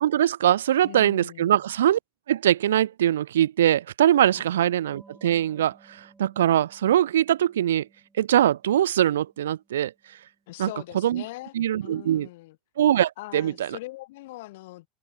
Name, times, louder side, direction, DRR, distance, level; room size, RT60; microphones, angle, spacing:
voice 1, 0.0-2.0 2.3-7.9 8.2-9.9 10.6-10.7 11.0-11.2 11.5-12.3 12.8-13.8, right 11 dB, 85° right, 0.5 m, -22 dB
voice 2, 0.8-1.6 4.3-4.4 10.5-11.5 11.8-12.6 13.2-14.9, left 19 dB, 70° left, 5.4 m, -41 dB
sound 1, 4.9-11.1, right 3 dB, 15° right, 7.6 m, -60 dB
open air
hypercardioid pair, 85°, 0 cm